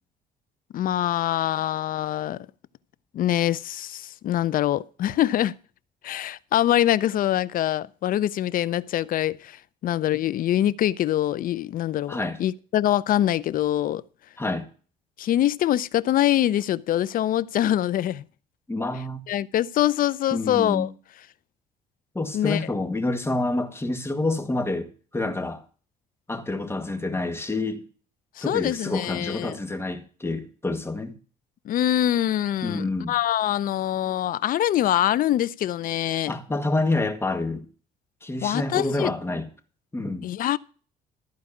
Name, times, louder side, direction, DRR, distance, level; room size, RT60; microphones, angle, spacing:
voice 1, 0.7-2.5 3.1-5.5 6.0-9.6 9.8-14.0 15.2-18.2 19.3-20.9 22.3-22.6 28.4-29.6 31.7-36.3 38.4-39.1 40.2-40.6, left 12 dB, 55° left, 0.5 m, -24 dB
voice 2, 12.1-12.4 14.4-14.7 18.7-19.2 20.3-20.9 22.2-25.6 26.3-27.8 28.4-31.1 32.6-33.1 36.3-37.7 38.2-39.5 39.9-40.3, left 2 dB, 15° left, 1.8 m, -28 dB
13.5 x 4.8 x 8.4 m
cardioid pair, 110°, 17 cm